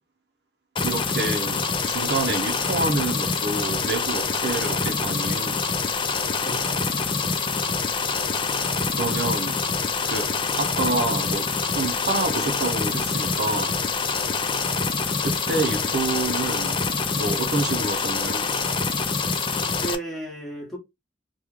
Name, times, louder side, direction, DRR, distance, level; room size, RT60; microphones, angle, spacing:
sound 1, 0.7-19.9, left 4 dB, 30° left, 0.4 m, -25 dB
voice 1, 0.8-5.6 8.5-9.6 10.0-10.3 10.6-13.7 15.2-18.5, right 3 dB, 65° right, 0.7 m, -28 dB
voice 2, 6.4-6.8 19.5-20.8, right 2 dB, ahead, 1.3 m, -34 dB
3.1 x 2.3 x 3.4 m
head